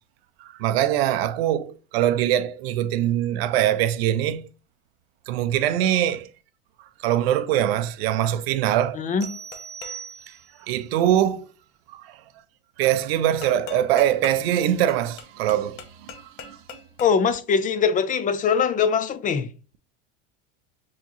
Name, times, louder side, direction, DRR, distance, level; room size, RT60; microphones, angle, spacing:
voice 1, 0.4-4.5 5.3-6.3 7.0-9.0 10.6-11.5 11.9-12.2 12.8-16.6, right 11 dB, 80° right, 0.6 m, -23 dB
voice 2, 9.0-9.3 17.0-19.5, left 6 dB, 25° left, 0.5 m, -22 dB
Rythmic Metal Drum, 9.2-10.1 13.4-17.3, left 6 dB, 50° left, 1.0 m, -42 dB
sound 1, 9.2-10.7, right 7 dB, 35° right, 0.5 m, -39 dB
4.6 x 3.0 x 2.8 m
supercardioid pair, 110°, 30 cm